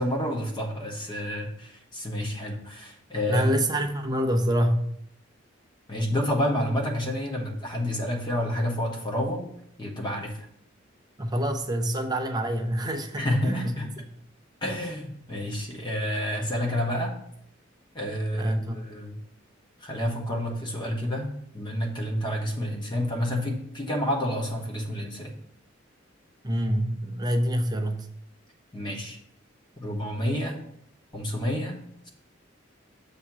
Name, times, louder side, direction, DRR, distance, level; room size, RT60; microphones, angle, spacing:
voice 1, 0.0-3.5 5.9-9.5 9.8-10.4 13.2-13.9 14.6-17.1 17.9-19.2 19.8-25.3 28.7-29.2 29.8-30.6 31.1-31.8, left 1 dB, 25° left, 0 dB, 1.2 m, -29 dB
voice 2, 3.3-4.9 11.2-13.7 18.3-18.8 26.4-28.1, equal, 20° right, 6 dB, 0.6 m, -26 dB
7.1 x 2.8 x 5.9 m, 0.69 s
head